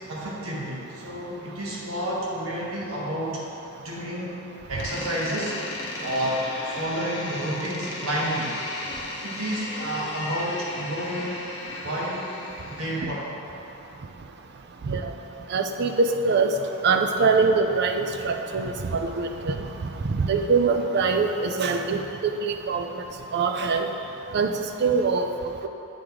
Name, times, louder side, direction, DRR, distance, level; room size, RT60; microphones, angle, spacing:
voice 1, 0.1-3.4 3.8-4.3 4.7-5.6 6.0-8.6 9.2-11.4 11.8-12.2 12.6-13.3, right 1 dB, 70° right, -5 dB, 1.4 m, -30 dB
Door, 4.8-13.3, left 2 dB, 55° left, 0.8 m, -36 dB
voice 2, 15.5-16.5 16.8-19.6 20.1-22.9 23.3-23.9 24.3-24.5 24.8-25.3, right 4 dB, 50° right, 5 dB, 0.4 m, -23 dB
8.0 x 3.7 x 4.6 m, 2.9 s
head